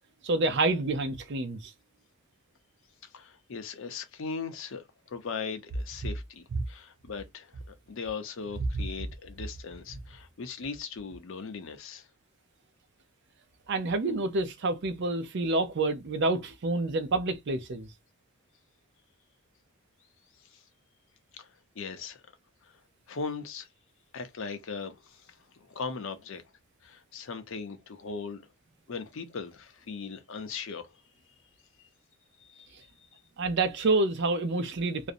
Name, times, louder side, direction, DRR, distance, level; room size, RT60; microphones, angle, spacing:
voice 1, 0.2-1.7 6.5-6.6 8.7-8.8 13.7-17.9 33.4-35.1, right 2 dB, 50° right, 0.5 m, -28 dB
voice 2, 3.0-12.1 20.5-20.6 21.3-21.5 21.8-22.2 22.6-22.7 23.1-23.7 24.1-26.4 26.8-28.4 28.9-31.0 31.8-31.9 32.4-32.7, left 5 dB, 60° left, 0.5 m, -39 dB
2.5 x 2.0 x 2.5 m
head